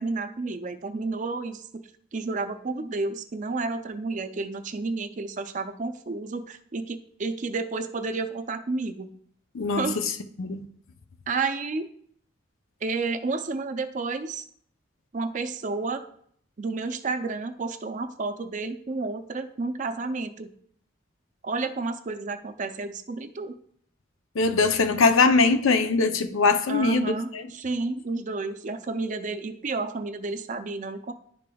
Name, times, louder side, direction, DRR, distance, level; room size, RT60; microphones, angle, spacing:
voice 1, 0.0-1.8 2.1-9.1 9.8-10.0 11.3-11.9 12.8-14.5 15.1-16.0 16.6-20.5 21.4-23.5 26.7-31.1, right 3 dB, 40° right, 0.4 m, -31 dB
voice 2, 9.5-9.9 10.4-10.7 24.4-27.4, left 4 dB, 90° left, 0.6 m, -21 dB
10.5 x 5.0 x 2.3 m
head